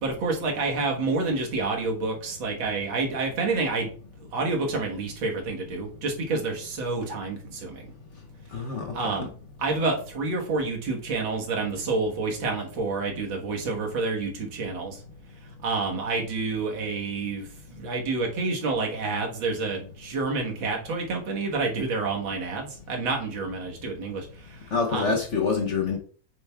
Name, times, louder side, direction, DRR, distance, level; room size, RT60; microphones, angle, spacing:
voice 1, 0.0-3.9 4.2-7.9 8.9-9.3 9.6-15.0 15.6-25.1, right 3 dB, 75° right, 2.1 m, -29 dB
voice 2, 8.5-9.3 24.7-26.0, left 5 dB, 65° left, 0.7 m, -26 dB
7.7 x 6.8 x 2.3 m
omnidirectional pair, 2.2 m